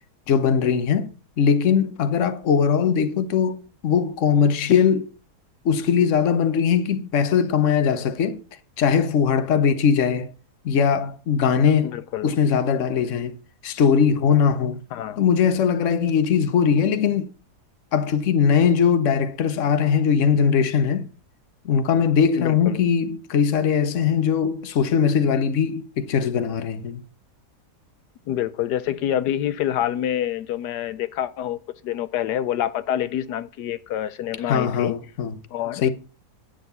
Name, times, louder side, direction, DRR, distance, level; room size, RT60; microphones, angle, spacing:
voice 1, 0.3-5.1 5.6-8.4 8.8-10.3 10.6-13.4 13.6-14.8 15.2-17.3 17.9-21.1 21.6-27.0 34.5-35.4 35.8-35.9, left 7 dB, 55° left, 1.2 m, -20 dB
voice 2, 11.8-12.3 14.9-15.2 22.4-22.8 28.3-34.9 35.5-35.9, left 11 dB, 85° left, 1.3 m, -27 dB
10.0 x 6.5 x 6.8 m
omnidirectional pair, 1.7 m